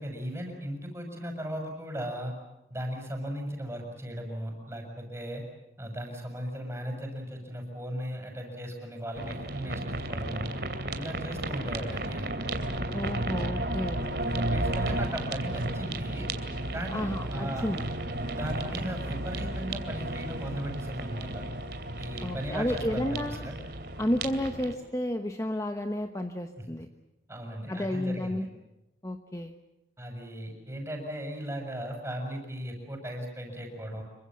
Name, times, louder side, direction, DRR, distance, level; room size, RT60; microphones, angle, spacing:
voice 1, 0.0-2.3 2.7-5.4 5.8-10.5 10.9-12.3 14.3-16.3 16.7-17.7 18.2-21.4 22.0-23.6 27.3-28.4 30.0-34.0, equal, 15° right, 2 dB, 6.5 m, -37 dB
sound 1, 9.1-24.7, right 1 dB, 70° right, 2.8 m, -33 dB
voice 2, 12.9-14.0 16.9-17.8 22.2-23.5 24.0-26.9 27.7-28.5 29.0-29.6, left 1 dB, 20° left, 6 dB, 1.0 m, -31 dB
27.0 x 24.0 x 7.6 m, 0.95 s
head